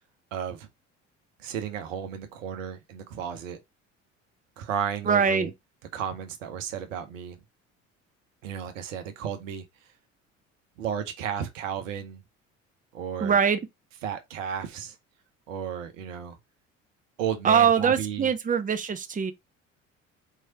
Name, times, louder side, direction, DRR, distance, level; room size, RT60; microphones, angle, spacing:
voice 1, 0.3-0.7 1.4-3.6 4.6-5.5 5.9-7.4 8.4-9.6 10.8-12.2 12.9-13.4 14.0-15.0 15.5-16.4 17.2-18.3, right 8 dB, 80° right, 0.9 m, -33 dB
voice 2, 5.1-5.5 13.2-13.6 17.4-19.3, right 7 dB, 20° right, 0.8 m, -22 dB
4.7 x 3.1 x 2.7 m
hypercardioid pair, 60°, 38 cm